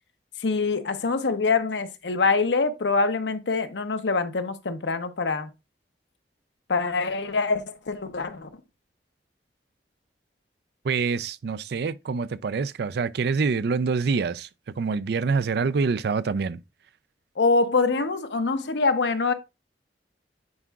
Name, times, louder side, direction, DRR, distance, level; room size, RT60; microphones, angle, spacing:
voice 1, 0.4-5.5 6.7-8.6 17.4-19.3, left 4 dB, 80° left, 0.8 m, -24 dB
voice 2, 10.8-14.5 14.8-16.6, right 5 dB, 65° right, 0.4 m, -26 dB
9.5 x 4.6 x 2.4 m
head